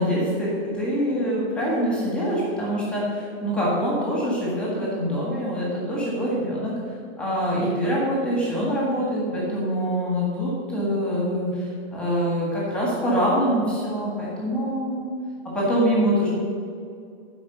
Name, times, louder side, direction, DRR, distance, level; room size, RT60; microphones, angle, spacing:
voice 1, 0.0-6.8 7.2-15.1 15.4-16.3, equal, 5° left, -5 dB, 1.6 m, -24 dB
11.0 x 4.8 x 6.7 m, 2.3 s
supercardioid pair, 175°, 34 cm